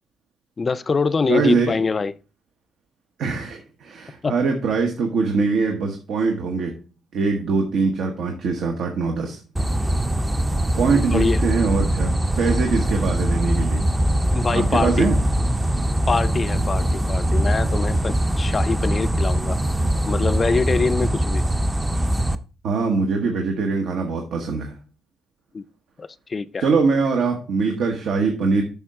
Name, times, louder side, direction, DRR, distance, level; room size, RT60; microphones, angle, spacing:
voice 1, 0.6-2.1 4.2-4.3 10.9-11.4 14.3-15.1 16.1-19.6 20.0-21.4 25.5-25.6 26.0-26.7, left 4 dB, 35° left, 0.4 m, -24 dB
voice 2, 1.3-1.7 3.2-6.7 7.1-9.4 10.8-13.8 14.5-15.2 22.6-24.8 26.6-28.6, right 4 dB, 75° right, 1.1 m, -22 dB
sound 1, 9.6-22.4, right 1 dB, 15° right, 0.5 m, -22 dB
7.1 x 5.6 x 3.6 m
cardioid pair, 90°, 0 cm